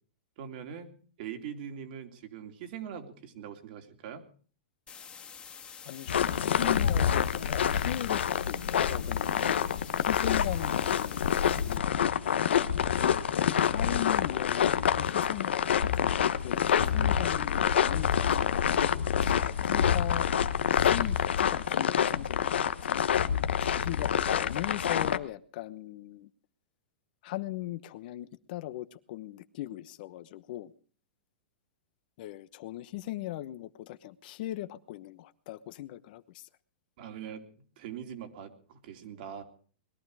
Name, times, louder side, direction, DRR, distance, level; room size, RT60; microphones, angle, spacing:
voice 1, 0.4-4.3 37.0-39.4, right 8 dB, 55° right, 5 dB, 3.0 m, -42 dB
sound 1, 4.9-11.8, left 7 dB, 20° left, 1.9 m, -47 dB
voice 2, 5.8-11.9 12.9-13.3 13.6-18.7 19.2-20.3 20.7-23.1 23.6-26.3 27.2-30.7 32.2-36.4, left 15 dB, 55° left, 14 dB, 1.0 m, -39 dB
sound 2, 6.1-25.2, left 8 dB, 85° left, 1.1 m, -27 dB
21.0 x 12.0 x 4.9 m, 0.43 s
hypercardioid pair, 135°, 6 cm